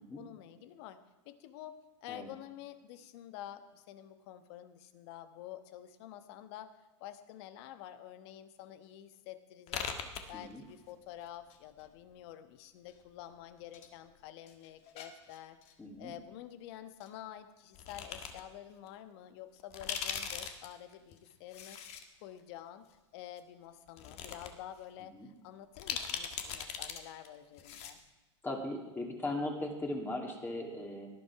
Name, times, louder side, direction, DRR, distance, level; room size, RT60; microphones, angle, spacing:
voice 1, 0.1-1.0 1.2-6.7 7.0-9.9 10.3-15.6 16.0-21.8 22.2-22.9 23.1-28.0, left 11 dB, 60° left, 10 dB, 1.2 m, -49 dB
sound 1, 9.7-10.9 11.2-12.1 12.9-13.9 14.2-15.7 17.0-17.1 17.7-18.4 18.9-19.0 19.6-22.0 22.4-22.5 23.4-23.5 23.9-24.5 24.8-24.9 25.8-27.0 27.2-27.3 27.6-28.0, left 7 dB, 40° left, 1.6 m, -41 dB
voice 2, 15.8-16.1 25.1-25.3 28.4-31.1, left 1 dB, 15° left, 1 dB, 2.4 m, -38 dB
18.0 x 11.0 x 4.8 m, 1.1 s
hypercardioid pair, 115°, 16 cm